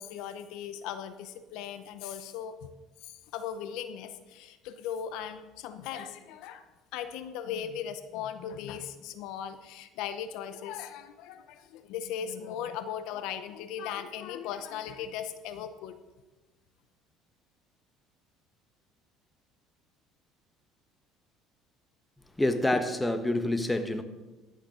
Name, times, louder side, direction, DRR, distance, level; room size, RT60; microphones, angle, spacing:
voice 1, 0.0-2.7 3.0-6.6 6.9-16.0, left 8 dB, 75° left, 11 dB, 0.7 m, -38 dB
voice 2, 22.4-24.0, left 1 dB, 10° left, 9 dB, 1.1 m, -27 dB
14.5 x 6.6 x 5.0 m, 1.2 s
supercardioid pair, 100°, 0 cm